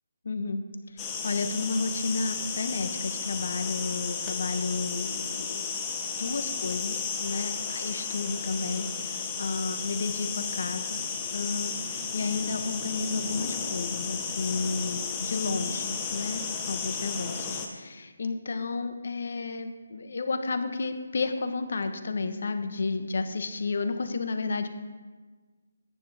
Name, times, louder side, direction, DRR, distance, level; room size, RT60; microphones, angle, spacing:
voice 1, 0.2-0.6 0.9-5.9 6.2-11.1 11.3-24.7, left 3 dB, 60° left, 7 dB, 1.2 m, -32 dB
sound 1, 1.0-17.7, left 5 dB, 15° left, 1.1 m, -33 dB
14.0 x 9.5 x 3.5 m, 1.4 s
figure-of-eight pair, 160°, 0 cm